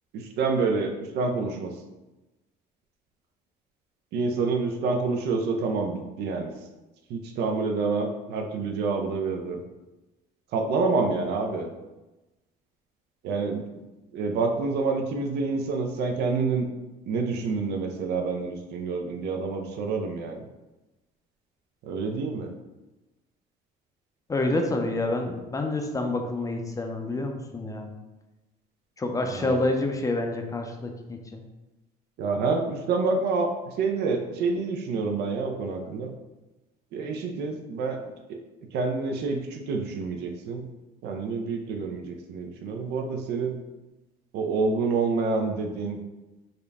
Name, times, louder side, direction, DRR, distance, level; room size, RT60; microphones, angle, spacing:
voice 1, 0.1-1.7 4.1-6.5 7.1-9.6 10.5-11.7 13.2-13.6 14.1-16.7 17.1-20.4 21.8-22.5 29.3-29.6 32.2-36.1 36.9-38.0 38.7-40.7 41.0-43.6 44.3-46.0, right 4 dB, 75° right, 4 dB, 0.5 m, -27 dB
voice 2, 24.3-27.9 29.0-31.4, left 2 dB, 20° left, 3 dB, 0.4 m, -28 dB
3.7 x 2.1 x 3.4 m, 1.0 s
cardioid pair, 110°, 17 cm